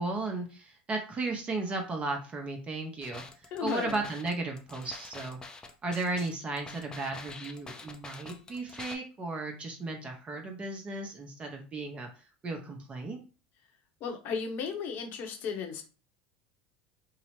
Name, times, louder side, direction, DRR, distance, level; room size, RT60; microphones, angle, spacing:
voice 1, 0.0-3.2 3.6-5.4 5.8-12.1 12.4-13.2, right 3 dB, 30° right, 3 dB, 0.6 m, -35 dB
sound 1, 3.0-9.0, left 3 dB, 20° left, 0.4 m, -46 dB
voice 2, 3.5-4.0 14.0-15.8, left 6 dB, 55° left, 4 dB, 0.7 m, -35 dB
2.7 x 2.0 x 2.9 m, 0.34 s
hypercardioid pair, 90°, 4 cm